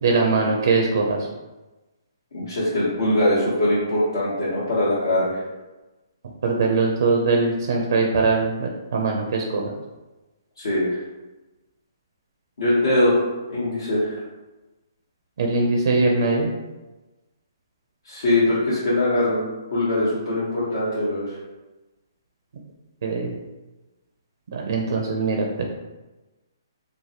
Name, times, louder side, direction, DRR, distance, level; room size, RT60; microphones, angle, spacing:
voice 1, 0.0-1.2 6.4-9.7 15.4-16.5 23.0-23.3 24.5-25.7, right 3 dB, 65° right, 1 dB, 0.4 m, -21 dB
voice 2, 2.3-5.4 10.6-10.9 12.6-14.2 18.0-21.3, left 1 dB, 75° left, -9 dB, 1.0 m, -22 dB
3.2 x 2.1 x 2.8 m, 1.1 s
hypercardioid pair, 145°, 2 cm